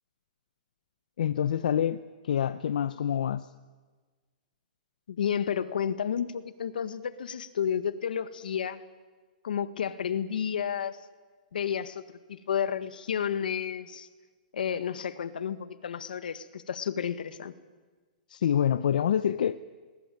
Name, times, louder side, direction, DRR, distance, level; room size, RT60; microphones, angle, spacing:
voice 1, 1.2-2.0 2.2-3.5 18.3-19.6, left 9 dB, 70° left, 13 dB, 0.8 m, -26 dB
voice 2, 5.1-8.8 9.4-11.0 11.5-14.1 14.5-17.5, left 8 dB, 85° left, 13 dB, 1.7 m, -31 dB
21.0 x 20.5 x 9.3 m, 1.4 s
hypercardioid pair, 170°, 5 cm